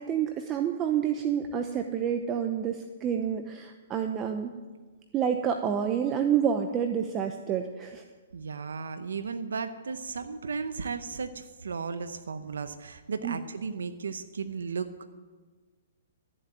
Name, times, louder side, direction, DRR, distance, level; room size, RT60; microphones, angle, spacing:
voice 1, 0.0-4.5 5.1-8.0 13.2-13.4, right 8 dB, 25° right, 6 dB, 0.8 m, -28 dB
voice 2, 8.3-14.9, right 5 dB, 85° right, 10 dB, 0.9 m, -35 dB
13.5 x 7.8 x 9.1 m, 1.4 s
hypercardioid pair, 140°, 0 cm